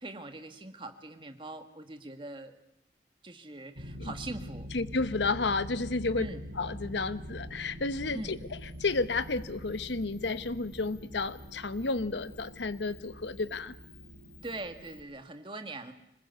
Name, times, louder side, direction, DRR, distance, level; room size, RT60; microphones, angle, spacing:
voice 1, 0.0-2.6 3.2-4.7 6.1-6.4 8.1-8.4 14.4-15.9, right 2 dB, 30° right, 7 dB, 1.8 m, -42 dB
sound 1, 3.8-15.0, equal, 65° right, 3.3 m, -44 dB
voice 2, 4.7-6.3 6.6-13.7, left 3 dB, 85° left, 14 dB, 1.0 m, -32 dB
Camera, 8.0-15.0, left 9 dB, 45° left, 4.7 m, -61 dB
25.5 x 20.5 x 8.2 m, 0.79 s
head